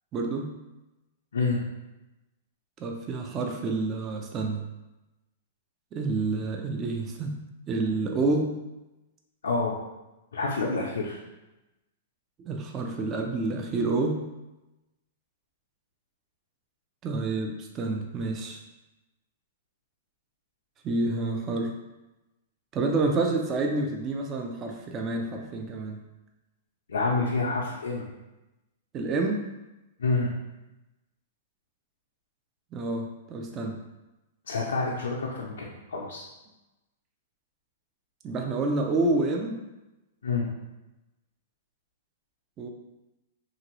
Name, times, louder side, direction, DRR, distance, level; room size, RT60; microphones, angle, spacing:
voice 1, 0.1-0.5 2.8-4.6 5.9-7.4 7.7-8.6 12.4-14.2 17.0-18.6 20.8-21.7 22.7-26.0 28.9-29.4 32.7-33.8 38.2-39.6 42.6-42.7, right 3 dB, 30° right, 2 dB, 0.4 m, -28 dB
voice 2, 9.4-9.7 10.3-11.2 26.9-28.1 30.0-30.3 34.5-36.2 40.2-40.5, left 3 dB, 90° left, -3 dB, 0.5 m, -28 dB
2.9 x 2.5 x 2.9 m, 1.0 s
hypercardioid pair, 130°, 0 cm